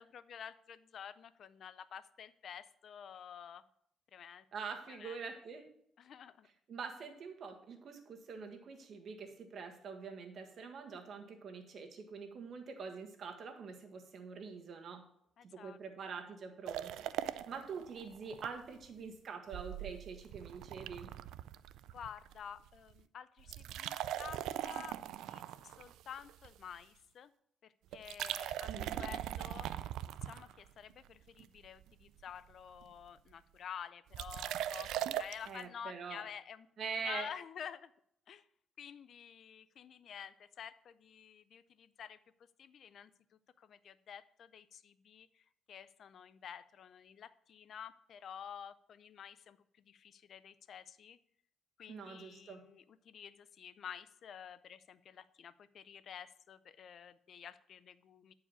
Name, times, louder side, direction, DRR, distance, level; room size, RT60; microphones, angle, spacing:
voice 1, 0.0-3.6 4.1-4.4 4.9-5.2 6.0-6.5 15.4-15.8 21.9-27.3 27.6-29.7 30.0-36.7 37.0-37.9 38.3-38.5 38.8-42.2 42.6-43.1 43.6-51.2 51.8-58.3, left 8 dB, 60° left, 16 dB, 0.5 m, -50 dB
voice 2, 4.5-5.6 6.7-15.1 15.4-21.1 28.7-29.1 35.4-36.2 36.8-37.3 51.9-52.6, right 5 dB, 60° right, 5 dB, 1.6 m, -45 dB
sound 1, 16.7-18.5 18.8-18.9 19.5-22.4 22.7-23.0 23.4-26.7 27.9-30.9 31.4-31.9 32.2-32.3 32.5-33.1 34.1-35.5, right 12 dB, 90° right, 0.3 m, -41 dB
9.7 x 4.8 x 7.0 m, 0.71 s
cardioid pair, 90°, 0 cm